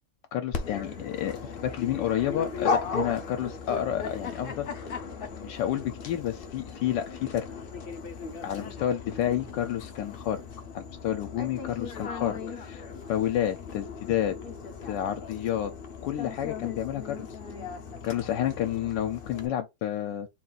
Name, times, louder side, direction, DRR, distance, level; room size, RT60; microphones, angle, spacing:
voice 1, 0.3-4.7 5.4-7.5 8.4-10.4 10.7-12.8 13.1-14.4 14.9-15.7 16.0-17.3 18.0-20.3, left 11 dB, 80° left, 1.2 m, -30 dB
Dog, 0.5-19.5, left 5 dB, 55° left, 0.6 m, -37 dB
4.1 x 2.4 x 3.9 m
omnidirectional pair, 1.9 m